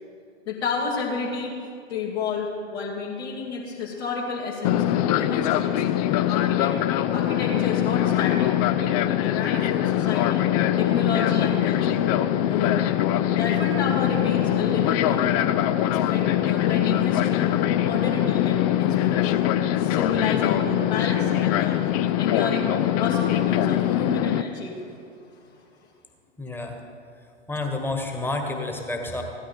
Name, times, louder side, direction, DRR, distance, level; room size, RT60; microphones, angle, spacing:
voice 1, 0.5-1.5 1.9-4.8 5.1-5.8 6.1-6.8 7.1-8.5 8.8-10.5 10.8-12.1 12.5-13.0 13.4-15.5 15.8-17.5 17.8-19.5 19.8-21.9 22.2-22.7 23.0-24.9 25.3-25.4, left 4 dB, 60° left, -5 dB, 2.7 m, -30 dB
Fixed-wing aircraft airplane, 4.6-24.4, left 12 dB, 30° left, 0.5 m, -22 dB
voice 2, 26.4-26.8 27.5-29.2, left 2 dB, 5° left, 3 dB, 1.6 m, -29 dB
16.5 x 12.5 x 4.4 m, 2.4 s
figure-of-eight pair, 95°, 36 cm